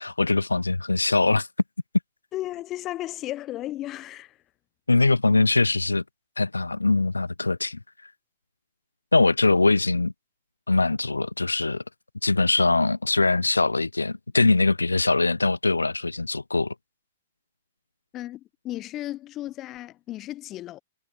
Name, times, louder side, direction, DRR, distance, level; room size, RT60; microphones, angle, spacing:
voice 1, 0.0-1.5 4.9-6.0 6.4-7.8 9.1-10.1 10.7-11.8 12.2-16.7, left 3 dB, 85° left, 0.5 m, -22 dB
voice 2, 2.3-4.4 18.1-20.8, left 14 dB, 30° left, 0.8 m, -34 dB
figure-of-eight pair, 110°, 0 cm